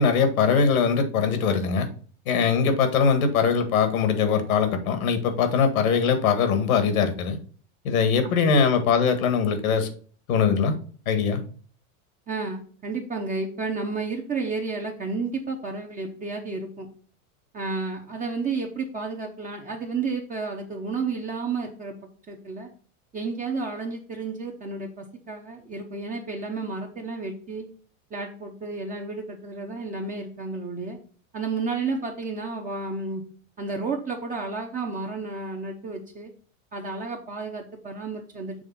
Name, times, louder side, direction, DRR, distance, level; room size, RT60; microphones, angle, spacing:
voice 1, 0.0-1.9 2.3-7.4 7.9-9.9 10.3-10.7 11.1-11.4, left 6 dB, 85° left, 8 dB, 1.7 m, -21 dB
voice 2, 8.2-8.7 12.3-16.9 17.5-21.9 22.3-22.7 23.1-27.7 28.1-31.0 31.3-33.2 33.6-36.3 36.7-38.6, right 4 dB, 20° right, 1 dB, 0.8 m, -31 dB
7.1 x 3.2 x 5.6 m, 0.43 s
supercardioid pair, 135°, 41 cm